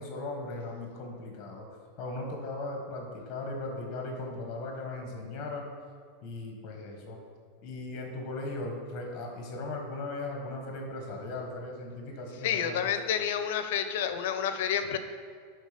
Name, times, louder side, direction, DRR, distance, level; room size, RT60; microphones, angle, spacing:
voice 1, 0.0-1.7 2.0-5.7 6.2-7.2 7.6-12.9, left 2 dB, 30° left, 2 dB, 1.4 m, -38 dB
voice 2, 12.4-15.0, left 8 dB, 65° left, 9 dB, 0.7 m, -29 dB
11.0 x 3.9 x 5.1 m, 2.1 s
supercardioid pair, 165°, 0 cm